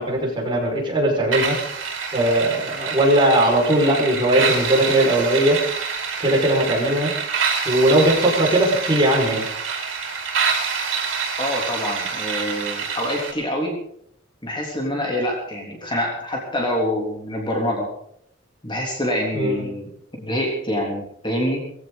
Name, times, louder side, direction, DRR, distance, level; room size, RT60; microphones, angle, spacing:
voice 1, 0.0-1.5 2.1-5.6 6.2-7.1 7.6-9.4 19.3-19.6, right 1 dB, 25° right, -2 dB, 6.0 m, -19 dB
sound 1, 1.3-13.3, right 5 dB, 75° right, 4.8 m, -26 dB
voice 2, 11.4-13.7 14.4-17.9 18.6-19.9 20.2-21.7, equal, 25° left, -1 dB, 3.5 m, -26 dB
20.0 x 16.0 x 4.2 m, 0.69 s
head